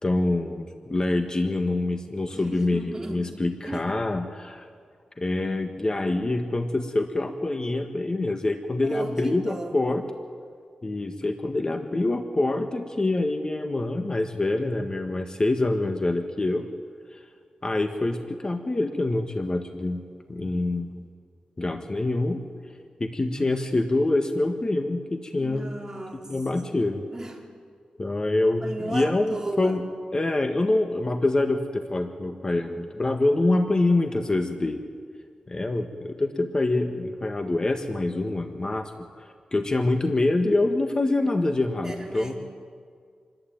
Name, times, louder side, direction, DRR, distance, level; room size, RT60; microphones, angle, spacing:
voice 1, 0.0-4.6 5.2-10.0 10.8-16.7 17.1-17.2 17.6-21.1 21.6-22.4 23.0-25.7 26.3-27.0 28.0-29.8 30.1-34.8 35.5-42.3, left 2 dB, 30° left, 5 dB, 1.6 m, -25 dB
voice 2, 2.3-3.2 3.6-4.1 8.8-9.8 25.4-26.3 27.1-27.5 28.6-29.8 41.8-42.3, right 2 dB, 20° right, 0 dB, 4.4 m, -35 dB
27.5 x 21.5 x 9.0 m, 2.1 s
wide cardioid pair, 110°, 3 cm